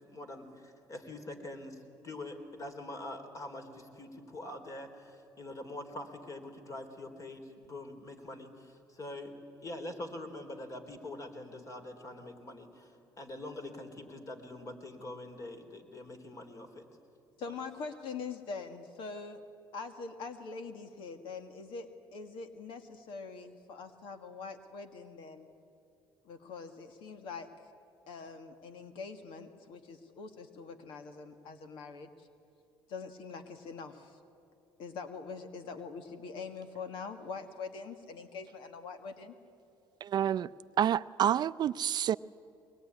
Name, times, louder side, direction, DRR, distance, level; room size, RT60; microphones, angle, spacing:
voice 1, 0.1-9.3 9.6-16.8, left 1 dB, 40° left, 4.1 m, -44 dB
voice 2, 17.4-19.4 19.7-25.5 26.3-27.5 28.1-32.3 32.9-34.2 34.8-39.3, left 4 dB, 75° left, 1.8 m, -43 dB
voice 3, 40.0-40.5 40.8-42.2, right 10 dB, 50° right, 0.5 m, -28 dB
23.0 x 21.0 x 9.8 m
cardioid pair, 90°, 9 cm